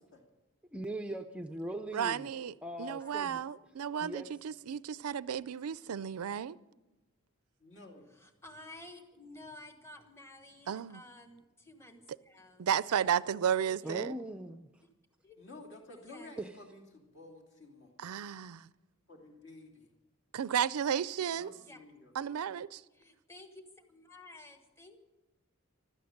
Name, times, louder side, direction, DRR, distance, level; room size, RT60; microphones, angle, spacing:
voice 1, 0.7-2.3 2.6-3.4 4.0-4.3 13.8-14.8 16.4-16.5, right 1 dB, 5° right, 0.4 m, -40 dB
voice 2, 1.9-6.6 10.7-11.0 12.6-14.2 18.0-18.7 20.3-21.5 22.2-22.8, right 8 dB, 85° right, 0.4 m, -33 dB
voice 3, 3.0-3.5 8.1-13.3 13.8-14.1 15.2-15.4 15.9-16.3 21.5-21.8 22.5-22.6 22.9-23.6 23.9-25.0, left 2 dB, 10° left, 1.2 m, -53 dB
voice 4, 7.6-8.1 15.4-17.9 19.1-19.9 21.3-22.1, left 2 dB, 55° left, 2.7 m, -52 dB
16.0 x 12.5 x 6.6 m
head